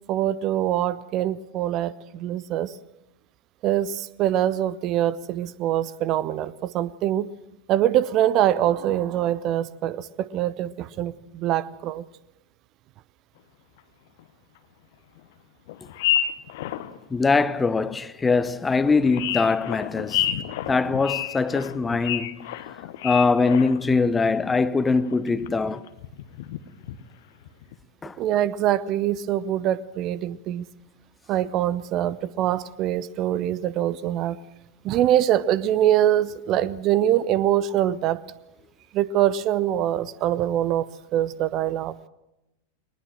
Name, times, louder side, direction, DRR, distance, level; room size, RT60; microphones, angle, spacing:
voice 1, 0.1-2.7 3.6-7.3 7.7-12.0 28.2-30.6 31.3-34.4 34.8-38.2 38.9-40.9 41.1-41.9, right 11 dB, 35° right, 0.7 m, -24 dB
sound 1, 13.8-13.9 14.2-14.3 15.2-15.3 15.7-17.0 17.5-17.6 18.3-18.4 18.8-24.0 24.2-24.5 25.0-25.6 25.9-27.0 27.4-27.7, left 11 dB, 55° left, 1.1 m, -30 dB
voice 2, 17.1-20.2 20.7-22.5 23.0-25.9 28.0-28.2, left 4 dB, 15° left, 0.7 m, -22 dB
20.5 x 20.0 x 7.7 m
figure-of-eight pair, 90°, 0 cm